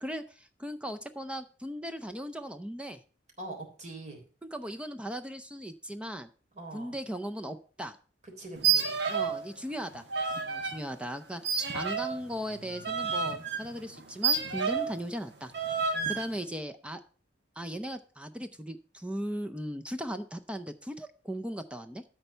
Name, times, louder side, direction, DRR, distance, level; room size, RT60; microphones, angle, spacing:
voice 1, 0.0-3.0 4.5-6.3 6.7-8.0 9.1-10.0 10.5-15.5 15.8-17.0 17.6-22.0, equal, 5° right, 8 dB, 0.5 m, -38 dB
voice 2, 3.4-4.2 6.5-7.0 8.4-8.9 15.9-16.3, right 2 dB, 40° right, 1 dB, 3.4 m, -43 dB
sound 1, 8.6-9.5 9.7-10.8 11.4-15.0 15.5-16.3, right 6 dB, 65° right, 1.5 m, -30 dB
12.5 x 4.5 x 6.6 m, 0.39 s
head